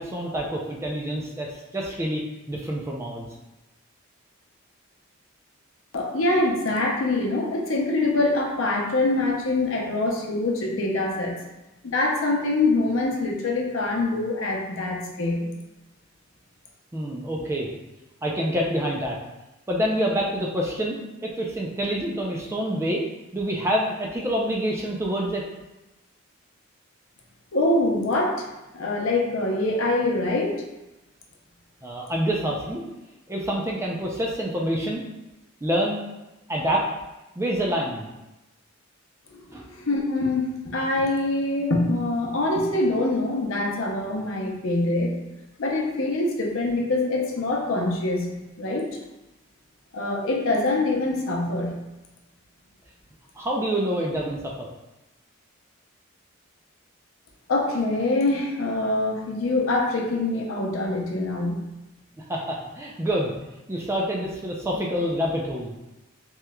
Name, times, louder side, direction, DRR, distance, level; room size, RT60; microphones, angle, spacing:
voice 1, 0.0-3.3 16.9-17.7 18.2-19.2 19.7-21.0 21.2-23.0 23.3-25.4 31.8-32.8 33.3-35.0 35.6-36.0 36.5-36.9 37.4-38.1 39.5-39.6 53.4-54.7 62.2-63.3 63.7-65.7, equal, 15° right, -2 dB, 0.3 m, -27 dB
voice 2, 5.9-11.3 11.8-15.5 27.5-28.4 28.7-30.6 39.3-39.4 39.7-45.1 45.6-48.9 49.9-51.8 57.5-61.6, left 2 dB, 70° left, -1 dB, 0.6 m, -24 dB
3.4 x 2.9 x 2.2 m, 1.0 s
head